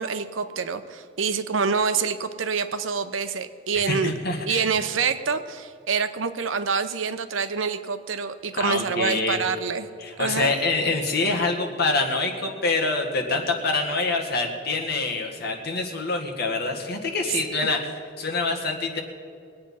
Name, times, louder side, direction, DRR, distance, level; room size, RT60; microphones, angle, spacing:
voice 1, 0.0-4.1 4.5-9.9 10.2-10.5, right 5 dB, 85° right, 11 dB, 0.8 m, -26 dB
voice 2, 3.9-4.7 8.5-9.4 10.0-17.9 18.2-19.0, left 3 dB, 55° left, 1 dB, 1.9 m, -26 dB
22.0 x 8.8 x 5.6 m, 2.4 s
head